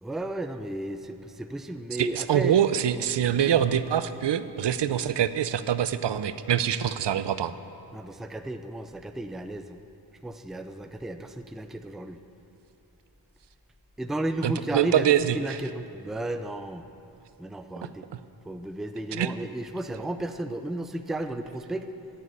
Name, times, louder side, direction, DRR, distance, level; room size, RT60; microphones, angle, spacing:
voice 1, 0.0-2.6 7.9-9.8 10.2-12.2 14.0-15.1 15.3-16.9 17.4-18.0 18.5-21.9, right 1 dB, ahead, 8 dB, 0.4 m, -33 dB
voice 2, 2.0-7.5 14.4-15.6 18.1-18.2 19.1-19.3, right 9 dB, 75° right, 13 dB, 0.6 m, -25 dB
14.0 x 7.7 x 9.8 m, 2.9 s
wide cardioid pair, 170°, 42 cm